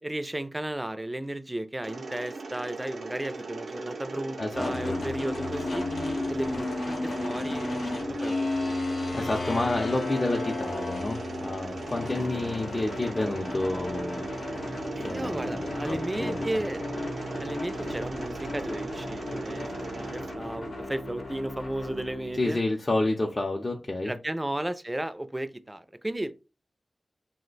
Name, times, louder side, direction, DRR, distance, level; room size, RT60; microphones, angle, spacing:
voice 1, 0.0-5.9 6.3-6.7 7.2-8.7 12.3-12.4 14.9-16.9 17.4-22.6 24.0-26.3, right 1 dB, 20° right, 0.4 m, -34 dB
Mechanisms, 1.8-20.3, right 3 dB, 80° right, 0.5 m, -39 dB
voice 2, 4.4-5.0 9.1-14.3 15.0-16.6 22.4-24.1, left 2 dB, 40° left, 0.5 m, -30 dB
sound 1, 4.5-22.4, left 2 dB, 85° left, 0.8 m, -34 dB
2.5 x 2.1 x 3.9 m
cardioid pair, 40°, 0 cm